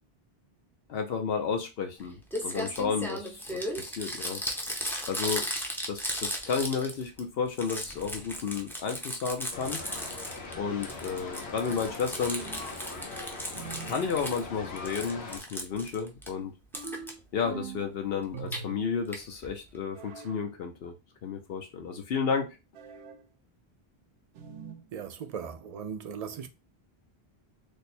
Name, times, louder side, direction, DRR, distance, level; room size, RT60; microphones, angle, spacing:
voice 1, 0.9-4.4 5.1-5.4 5.9-9.8 10.6-12.4 13.9-16.5 17.3-20.9 21.2-22.5, left 6 dB, 70° left, 0.8 m, -32 dB
Crumpling crinkling, 2.0-2.1 2.3-7.2 7.5-10.5 10.8-14.4 14.8-16.3 16.7-17.1 18.2-18.6 19.1-19.2 19.4-19.5 19.7-19.8, equal, 5° left, 0.5 m, -36 dB
sound 1, 9.5-15.4, left 3 dB, 85° left, 1.2 m, -41 dB
sound 2, 12.4-12.9 13.6-14.1 16.7-17.9 18.3-19.0 19.9-20.4 22.7-23.3 24.4-24.9, right 5 dB, 80° right, 0.8 m, -43 dB
voice 2, 24.9-26.5, right 7 dB, 55° right, 0.4 m, -38 dB
3.3 x 2.1 x 4.2 m
omnidirectional pair, 1.0 m